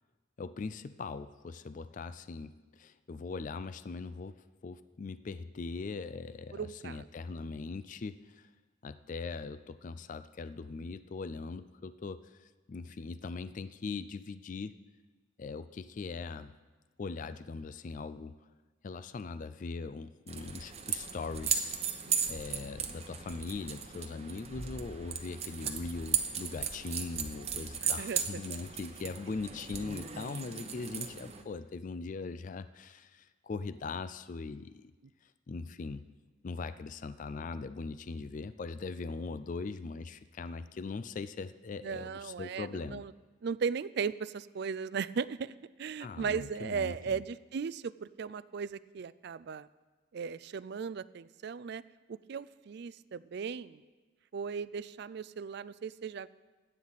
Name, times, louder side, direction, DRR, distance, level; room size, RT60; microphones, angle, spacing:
voice 1, 0.4-8.5 8.8-14.8 15.4-16.6 17.0-18.3 18.8-21.7 22.3-34.9 35.2-36.1 36.4-43.0 46.0-47.2, left 4 dB, 40° left, 12 dB, 0.4 m, -40 dB
voice 2, 6.5-7.0 22.0-22.2 28.0-28.2 41.8-43.1 43.4-49.7 50.1-51.8 52.1-53.8 54.3-56.3, right 6 dB, 55° right, 17 dB, 0.4 m, -37 dB
sound 1, 20.3-31.4, right 7 dB, 30° right, 0.9 m, -36 dB
16.5 x 10.5 x 4.1 m, 1.3 s
head